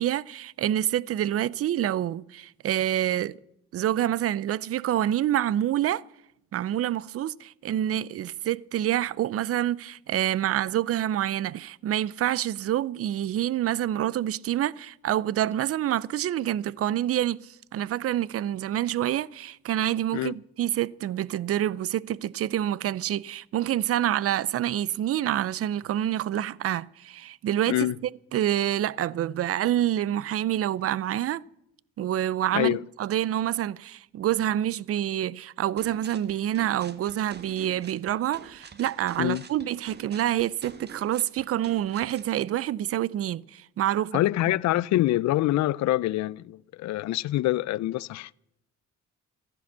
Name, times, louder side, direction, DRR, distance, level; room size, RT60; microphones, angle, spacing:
voice 1, 0.0-3.4 3.7-6.0 6.5-27.9 28.3-31.4 32.0-44.2, right 12 dB, 50° right, 0.5 m, -27 dB
sound 1, 35.8-42.3, right 5 dB, 35° right, 1.2 m, -47 dB
voice 2, 44.1-48.3, left 15 dB, 65° left, 0.4 m, -25 dB
14.5 x 10.5 x 7.2 m
cardioid pair, 90°, 30 cm